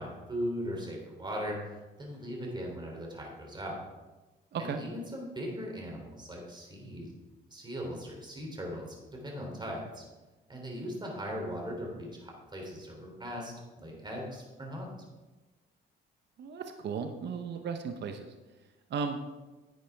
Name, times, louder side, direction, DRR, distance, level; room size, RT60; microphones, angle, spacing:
voice 1, 0.0-3.8 4.6-7.1 7.5-10.0 10.5-14.9, equal, 20° right, 0 dB, 3.1 m, -39 dB
voice 2, 16.4-18.3 18.9-19.2, right 6 dB, 60° right, 7 dB, 0.8 m, -35 dB
10.5 x 9.0 x 3.5 m, 1.2 s
cardioid pair, 90°, 20 cm